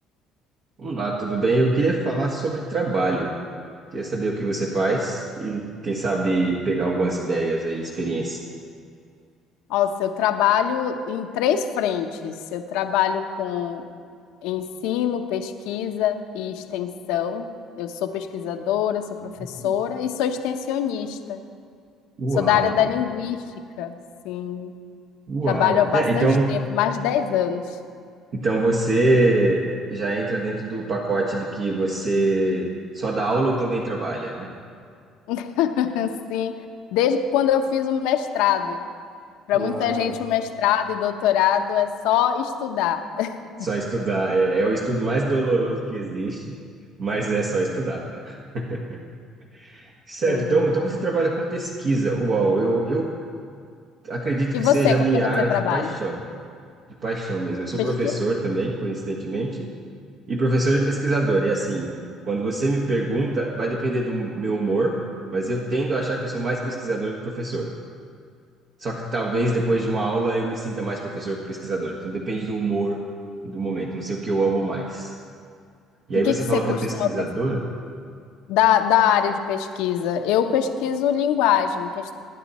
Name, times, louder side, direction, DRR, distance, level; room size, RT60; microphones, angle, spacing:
voice 1, 0.8-3.3 3.9-8.4 19.4-19.7 22.2-22.7 25.3-26.5 28.3-32.7 32.9-34.5 39.5-40.1 43.6-46.5 47.0-49.0 49.5-53.1 54.0-56.2 57.0-59.7 60.3-61.9 62.2-64.9 65.3-67.7 68.8-73.0 73.4-75.1 76.1-77.7, right 2 dB, 50° right, -3 dB, 1.6 m, -24 dB
voice 2, 9.7-13.9 14.4-21.4 22.4-23.4 23.8-24.0 24.2-24.7 25.5-27.7 35.3-36.5 36.9-38.9 39.5-43.3 50.3-50.7 54.5-55.9 57.8-58.2 76.1-77.1 78.5-82.1, left 9 dB, 80° left, 7 dB, 0.9 m, -23 dB
20.0 x 9.4 x 4.2 m, 2.2 s
supercardioid pair, 90°, 0 cm